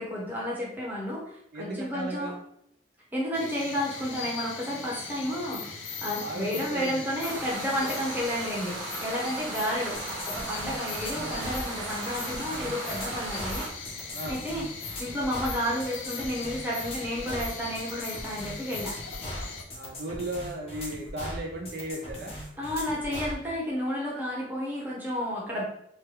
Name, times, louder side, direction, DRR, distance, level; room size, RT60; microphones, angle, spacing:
voice 1, 0.0-2.3 3.1-10.0 10.2-13.6 14.3-14.7 15.0-18.9 22.6-25.6, equal, 10° right, -5 dB, 0.8 m, -31 dB
voice 2, 1.5-2.4 6.2-7.1 7.3-8.0 11.1-11.4 14.1-14.4 19.7-22.4, right 1 dB, 50° right, 0 dB, 0.3 m, -36 dB
sound 1, 3.3-19.6, left 5 dB, 75° left, 0.5 m, -40 dB
sound 2, 7.2-13.7, right 2 dB, 80° right, 0.7 m, -37 dB
sound 3, 9.9-23.4, left 1 dB, 30° left, 0.5 m, -39 dB
3.0 x 2.2 x 3.1 m, 0.74 s
head